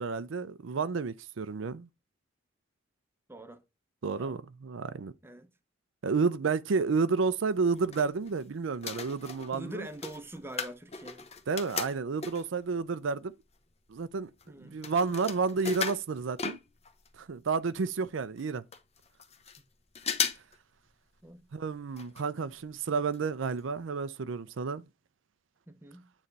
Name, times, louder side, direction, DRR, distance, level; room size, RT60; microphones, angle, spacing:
voice 1, 0.0-1.9 4.0-5.1 6.0-9.9 11.5-13.3 13.9-14.3 14.6-16.6 17.2-18.6 21.5-24.8, right 4 dB, 85° right, 0.5 m, -31 dB
voice 2, 3.3-3.6 4.2-4.4 5.2-5.5 9.5-11.3 14.5-14.8 21.2-21.5 25.7-26.1, right 1 dB, 10° right, 0.8 m, -44 dB
sound 1, 7.5-8.4 8.7-12.6 13.2-13.3 13.5-17.1 17.4-17.5 17.7-17.8 18.4-18.5 18.7-19.6 19.9-20.6 20.9-21.0 21.9-22.2 22.5-22.6 23.1-23.2 23.6-23.7, left 6 dB, 35° left, 0.9 m, -37 dB
9.0 x 3.3 x 4.0 m
head